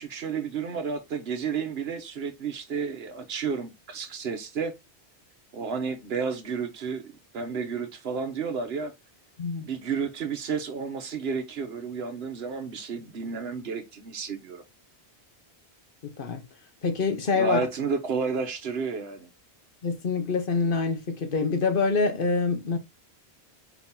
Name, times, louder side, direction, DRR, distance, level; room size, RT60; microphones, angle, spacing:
voice 1, 0.0-4.7 5.5-8.9 9.6-14.6 17.3-19.3, right 5 dB, 70° right, 1.1 m, -31 dB
voice 2, 16.0-16.4 16.8-17.6 19.8-22.8, left 4 dB, 55° left, 1.1 m, -26 dB
4.8 x 2.9 x 3.6 m
omnidirectional pair, 1.1 m